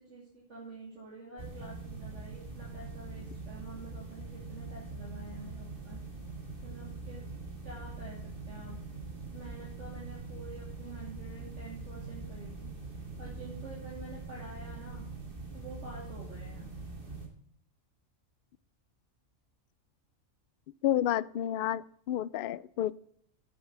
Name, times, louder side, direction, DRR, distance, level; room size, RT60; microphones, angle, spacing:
voice 1, 0.0-6.0 6.6-7.2 7.6-8.8 9.3-12.7 13.2-15.1 15.5-16.7, right 2 dB, 60° right, -5 dB, 3.2 m, -48 dB
sound 1, 1.4-17.3, right 3 dB, 40° right, 2.8 m, -43 dB
voice 2, 20.8-22.9, left 12 dB, 65° left, 19 dB, 0.5 m, -30 dB
9.3 x 9.0 x 5.7 m, 0.64 s
omnidirectional pair, 1.4 m